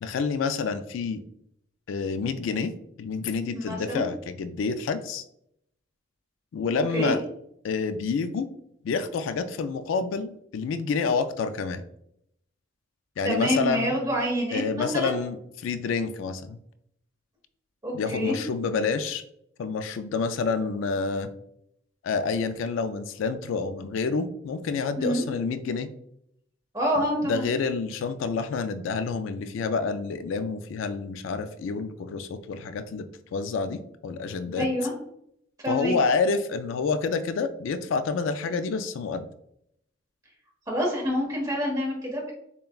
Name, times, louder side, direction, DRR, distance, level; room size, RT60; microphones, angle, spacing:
voice 1, 0.0-1.2 1.9-2.7 3.0-5.2 6.5-7.2 7.6-8.5 8.8-11.8 13.2-13.9 14.5-16.6 17.9-19.2 19.6-21.3 22.0-25.9 27.2-33.1 33.3-34.7 35.7-39.3, left 4 dB, 80° left, 11 dB, 0.3 m, -28 dB
voice 2, 3.5-4.0 6.9-7.1 13.2-15.2 17.8-18.4 25.0-25.2 26.7-27.4 34.5-34.9 35.6-35.9 40.7-42.3, equal, 20° right, -3 dB, 1.2 m, -27 dB
6.7 x 2.3 x 2.3 m, 0.74 s
head